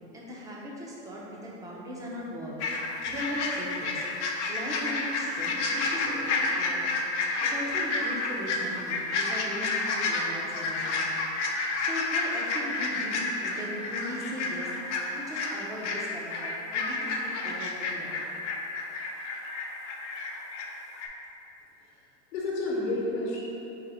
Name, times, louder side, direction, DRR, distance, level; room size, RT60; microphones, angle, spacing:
voice 1, 0.0-4.1 4.5-6.9 7.4-11.3 11.5-18.3, equal, 10° right, -4 dB, 0.5 m, -38 dB
sound 1, 2.6-20.7 20.9-21.1, left 3 dB, 85° left, 0.7 m, -30 dB
voice 2, 21.8-23.4, left 2 dB, 65° left, -5 dB, 1.0 m, -31 dB
4.0 x 3.0 x 4.2 m, 3.0 s
supercardioid pair, 150°, 34 cm